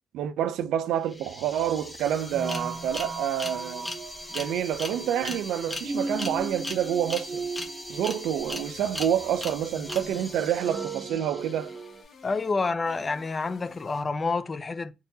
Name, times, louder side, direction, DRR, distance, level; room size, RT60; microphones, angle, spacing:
voice 1, 0.1-3.9 4.3-7.4 7.9-11.7, right 10 dB, 85° right, 0.3 m, -28 dB
sound 1, 0.8-0.9 1.1-11.9, left 2 dB, 15° left, 0.9 m, -39 dB
sound 2, 1.6-12.0, right 3 dB, 35° right, 0.6 m, -38 dB
sound 3, 8.4-9.6 9.9-11.1 11.4-12.6 12.9-14.1, left 5 dB, 65° left, 0.9 m, -52 dB
voice 2, 12.2-14.9, left 4 dB, 30° left, 0.3 m, -28 dB
3.7 x 2.6 x 2.7 m
cardioid pair, 90°, 0 cm